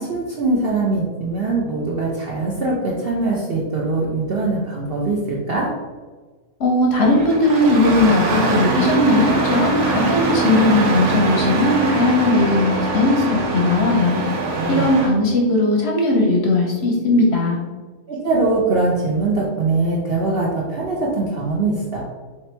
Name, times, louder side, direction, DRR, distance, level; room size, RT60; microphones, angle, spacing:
voice 1, 0.0-5.7 14.3-14.9 18.1-22.0, right 3 dB, 60° right, -3 dB, 0.6 m, -22 dB
voice 2, 6.6-14.2 14.7-17.6, left 2 dB, 55° left, -1 dB, 0.8 m, -18 dB
Engine starting, 7.0-15.1, right 3 dB, 75° right, 1.2 m, -22 dB
3.2 x 2.9 x 4.3 m, 1.4 s
omnidirectional pair, 1.6 m